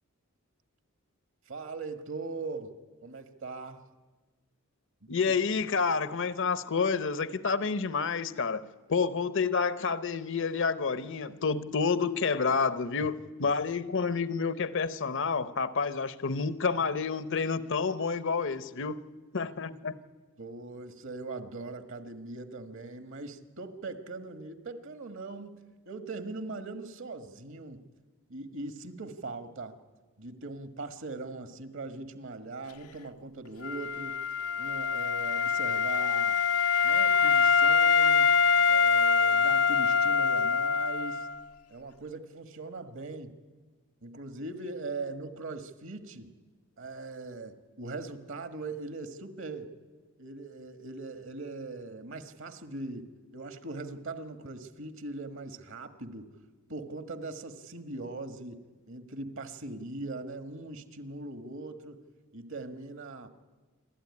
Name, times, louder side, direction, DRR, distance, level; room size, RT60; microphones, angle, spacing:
voice 1, 1.5-2.8 3.0-3.8 5.0-5.3 13.4-13.5 20.4-25.6 25.8-27.8 28.3-29.8 30.2-34.2 34.6-36.4 36.8-38.4 38.7-41.3 41.7-43.3 44.0-46.3 46.8-49.7 50.2-56.3 56.7-62.0 62.3-63.3, right 3 dB, 60° right, 1.6 m, -40 dB
voice 2, 5.1-19.0 19.3-19.9, left 5 dB, 60° left, 0.8 m, -29 dB
Wind instrument woodwind instrument, 33.6-41.4, left 6 dB, 85° left, 0.9 m, -24 dB
27.5 x 12.5 x 9.7 m
head